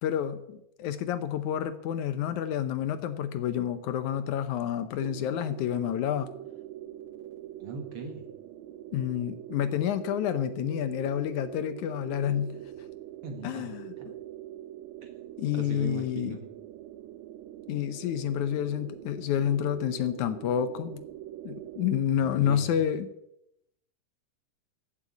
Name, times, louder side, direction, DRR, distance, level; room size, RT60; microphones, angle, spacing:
voice 1, 0.0-6.3 8.9-12.6 13.4-14.1 15.4-16.4 17.7-21.0 21.4-23.1, left 10 dB, 75° left, 12 dB, 2.1 m, -29 dB
sound 1, 5.0-22.0, right 13 dB, 75° right, 1.8 m, -43 dB
voice 2, 7.6-8.2 13.2-13.7 14.0-14.1 15.0-15.1 15.5-16.4 22.2-22.7, right 5 dB, 50° right, 5 dB, 2.3 m, -39 dB
15.5 x 8.0 x 8.4 m, 0.79 s
omnidirectional pair, 3.7 m